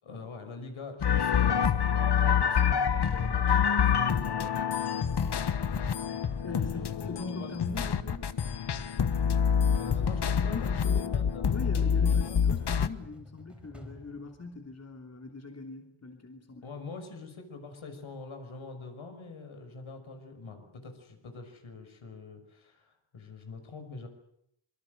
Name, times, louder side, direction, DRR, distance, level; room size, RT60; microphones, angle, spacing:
voice 1, 0.0-5.0 6.5-7.5 9.8-11.5 12.1-12.4 16.6-24.1, left 4 dB, 70° left, 6 dB, 5.8 m, -44 dB
sound 1, 1.0-12.9, left 7 dB, 50° left, 1.3 m, -27 dB
sound 2, 5.7-14.9, left 1 dB, ahead, 4.1 m, -50 dB
voice 2, 6.4-8.3 9.9-10.0 10.3-11.2 11.5-16.7, left 3 dB, 30° left, 3 dB, 3.1 m, -41 dB
26.0 x 23.0 x 8.0 m, 0.74 s
wide cardioid pair, 135°, 50 cm